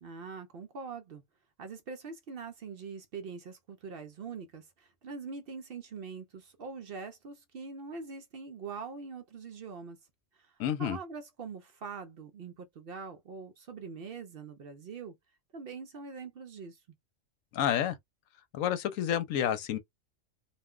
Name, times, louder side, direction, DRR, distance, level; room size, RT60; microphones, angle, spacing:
voice 1, 0.0-1.2 1.6-10.0 10.3-15.2 15.5-16.8, right 5 dB, 60° right, 0.6 m, -43 dB
voice 2, 10.6-11.0 17.5-18.0 18.5-19.8, left 10 dB, 85° left, 1.0 m, -29 dB
2.5 x 2.1 x 3.6 m
omnidirectional pair, 1.4 m